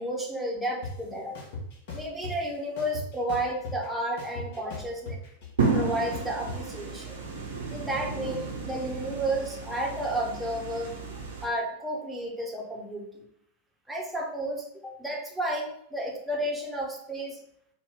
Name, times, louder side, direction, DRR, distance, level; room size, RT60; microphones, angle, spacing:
voice 1, 0.0-1.4 1.9-4.9 5.7-7.2 7.7-10.9 11.4-13.0 13.9-17.4, right 1 dB, 5° right, -2 dB, 1.1 m, -32 dB
sound 1, 0.8-0.9 1.3-2.3 2.8-3.9 4.2-6.6, left 3 dB, 50° left, 1.5 m, -38 dB
sound 2, 5.6-11.4, right 4 dB, 70° right, 1.2 m, -32 dB
4.5 x 2.5 x 3.6 m, 0.73 s
figure-of-eight pair, 90°, 0 cm